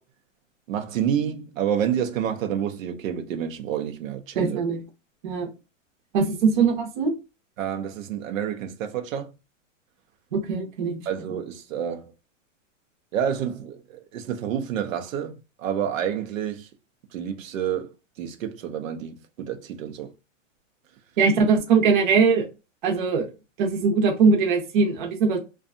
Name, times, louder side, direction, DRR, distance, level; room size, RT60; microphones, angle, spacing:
voice 1, 0.7-4.6 7.6-9.3 11.1-12.1 13.1-16.7 17.1-17.9 18.2-20.1, right 9 dB, 80° right, 0.6 m, -29 dB
voice 2, 4.3-4.8 5.2-5.5 6.1-7.1 10.3-11.1 21.2-22.5 22.8-23.3 23.6-25.4, right 5 dB, 40° right, 0.7 m, -21 dB
2.6 x 2.3 x 2.5 m
supercardioid pair, 175°, 39 cm